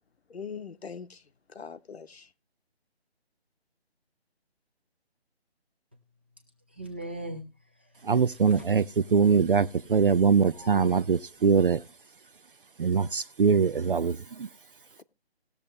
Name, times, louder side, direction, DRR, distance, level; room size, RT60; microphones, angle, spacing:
voice 1, 0.3-1.2 1.5-2.3, left 6 dB, 70° left, 1.1 m, -41 dB
voice 2, 6.7-8.6 9.8-11.8, right 1 dB, 10° right, 0.6 m, -43 dB
voice 3, 8.0-11.8 12.8-14.5, right 6 dB, 55° right, 0.5 m, -23 dB
19.0 x 7.0 x 3.2 m
hypercardioid pair, 170°, 32 cm